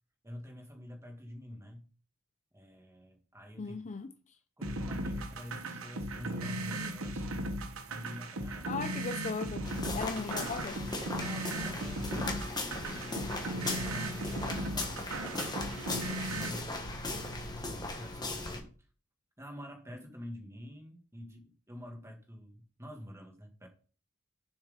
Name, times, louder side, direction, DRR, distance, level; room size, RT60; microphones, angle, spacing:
voice 1, 0.2-1.9 2.5-3.8 4.6-7.3 7.9-8.8 10.0-10.6 11.1-12.5 12.8-13.3 13.7-16.8 17.3-18.7 19.4-23.7, equal, 15° right, 2.0 m, -47 dB
voice 2, 3.6-4.1 8.6-9.7 9.9-10.8, left 4 dB, 35° left, 0.5 m, -37 dB
sound 1, 4.6-16.6, right 1 dB, 70° right, 1.2 m, -37 dB
sound 2, 9.6-18.6, left 2 dB, 20° left, 1.6 m, -38 dB
7.4 x 6.5 x 5.2 m
head